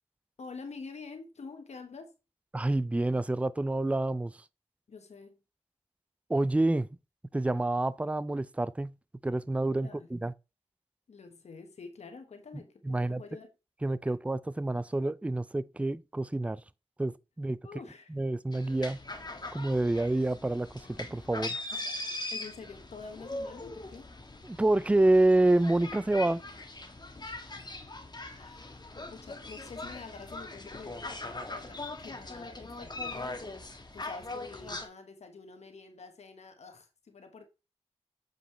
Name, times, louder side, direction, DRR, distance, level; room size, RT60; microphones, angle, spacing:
voice 1, 0.4-2.1 4.9-5.4 9.8-10.1 11.1-13.5 17.6-18.2 21.7-22.0 22.3-24.1 28.2-37.4, left 4 dB, 90° left, 1.3 m, -47 dB
voice 2, 2.5-4.3 6.3-6.9 7.3-8.9 9.2-10.3 12.8-13.2 13.8-16.6 17.0-17.6 18.1-19.0 19.5-21.6 24.4-26.4, right 2 dB, 10° right, 0.4 m, -28 dB
sound 1, 18.5-34.9, left 2 dB, 40° left, 1.3 m, -41 dB
7.6 x 5.1 x 3.1 m
cardioid pair, 45°, 11 cm